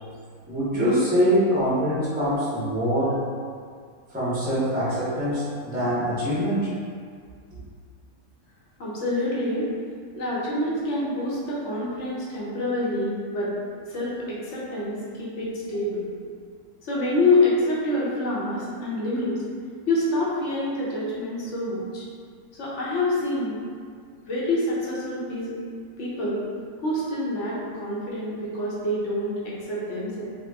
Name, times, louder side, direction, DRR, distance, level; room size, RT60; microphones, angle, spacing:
voice 1, 0.5-3.1 4.1-6.7, equal, 10° right, -10 dB, 0.5 m, -24 dB
voice 2, 8.8-9.7 10.2-13.5 13.9-16.0 16.8-19.4 19.9-22.0 22.5-23.5 24.2-25.5 26.0-26.4 26.8-30.3, left 2 dB, 60° left, -7 dB, 0.9 m, -26 dB
2.9 x 2.3 x 3.3 m, 2.1 s
omnidirectional pair, 1.6 m